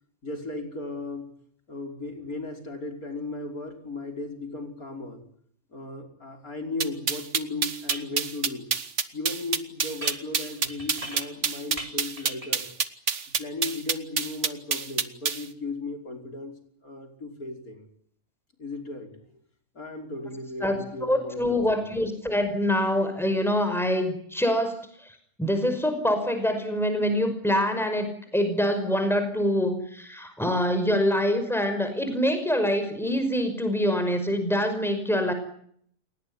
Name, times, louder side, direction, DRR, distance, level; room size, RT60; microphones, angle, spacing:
voice 1, 0.2-1.3 1.7-5.2 5.7-8.7 9.1-12.7 13.4-16.5 16.8-17.8 18.6-19.2 19.7-21.9, left 2 dB, 75° left, 4 dB, 5.8 m, -36 dB
sound 1, 6.8-15.4, right 5 dB, 55° right, 1.8 m, -26 dB
sound 2, 6.9-7.0 7.9-8.2 10.0-11.5 11.8-12.6, right 1 dB, 20° right, 3.6 m, -40 dB
voice 2, 20.6-25.1 25.4-35.3, equal, ahead, 8 dB, 5.5 m, -25 dB
29.0 x 18.5 x 9.8 m, 0.66 s
omnidirectional pair, 1.5 m